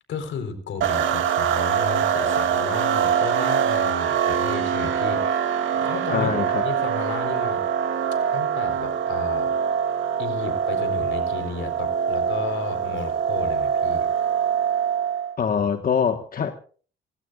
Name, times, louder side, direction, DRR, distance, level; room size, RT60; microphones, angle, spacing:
voice 1, 0.1-5.5 5.7-6.3 6.6-7.6 8.3-9.5 10.2-14.1, left 5 dB, 75° left, 4.3 m, -33 dB
sound 1, 0.8-15.4, right 7 dB, 75° right, 2.8 m, -24 dB
voice 2, 6.1-6.6 15.4-16.5, left 6 dB, 45° left, 1.5 m, -23 dB
27.0 x 17.0 x 2.5 m
cardioid pair, 90°, 20 cm